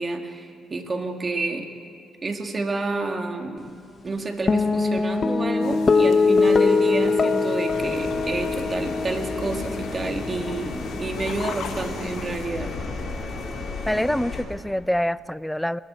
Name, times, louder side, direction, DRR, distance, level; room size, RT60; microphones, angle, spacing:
voice 1, 0.0-1.7 2.2-3.8 4.0-12.8, right 3 dB, 35° right, 3 dB, 2.5 m, -29 dB
sound 1, 4.5-11.1, left 4 dB, 40° left, 1.2 m, -22 dB
sound 2, 5.6-12.5, left 6 dB, 80° left, 1.7 m, -40 dB
sound 3, 7.7-14.4, left 3 dB, 60° left, 4.2 m, -33 dB
voice 2, 13.9-15.8, equal, 5° left, 18 dB, 0.5 m, -25 dB
28.0 x 21.0 x 4.5 m, 2.5 s
cardioid pair, 90°, 0 cm